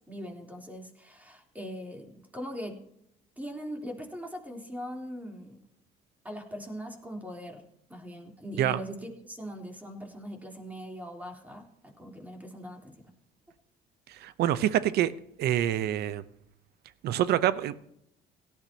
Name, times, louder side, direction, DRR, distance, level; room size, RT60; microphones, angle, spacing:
voice 1, 0.1-2.7 3.4-5.6 6.2-7.6 7.9-13.0, equal, 10° right, 1 dB, 3.4 m, -41 dB
voice 2, 14.1-15.1 15.4-16.2 17.0-17.7, right 12 dB, 70° right, 15 dB, 0.8 m, -26 dB
17.5 x 12.0 x 2.9 m, 0.76 s
cardioid pair, 110°, 17 cm